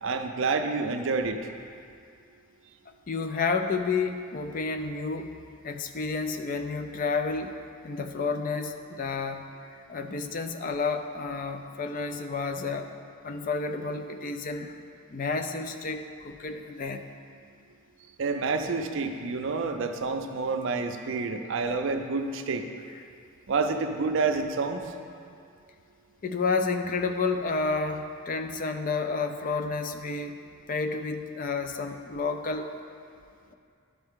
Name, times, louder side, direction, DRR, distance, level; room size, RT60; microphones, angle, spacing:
voice 1, 0.0-1.5 18.2-22.6 23.5-24.9, right 4 dB, 60° right, 6 dB, 0.5 m, -28 dB
voice 2, 3.1-5.3 5.6-7.5 7.8-9.4 9.7-12.9 13.2-14.8 15.1-17.0 26.2-30.4 30.7-32.8, left 4 dB, 40° left, 7 dB, 0.4 m, -30 dB
11.5 x 4.4 x 3.6 m, 2.3 s
head